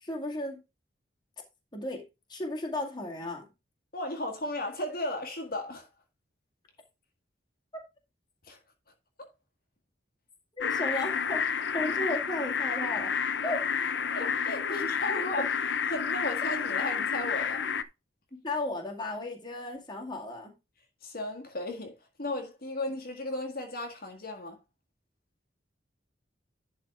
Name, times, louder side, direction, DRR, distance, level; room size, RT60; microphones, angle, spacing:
voice 1, 0.0-0.6 1.7-2.0 2.3-3.5 10.6-13.1 13.4-13.6 14.5-14.8 15.1-15.5 18.4-20.5, left 1 dB, 25° left, 2.1 m, -35 dB
voice 2, 3.9-5.9 8.4-8.6 14.1-15.5 15.9-17.6 21.0-24.6, left 1 dB, 50° left, 1.8 m, -35 dB
sound 1, 10.6-17.8, left 7 dB, 70° left, 0.7 m, -30 dB
11.0 x 4.1 x 4.9 m
head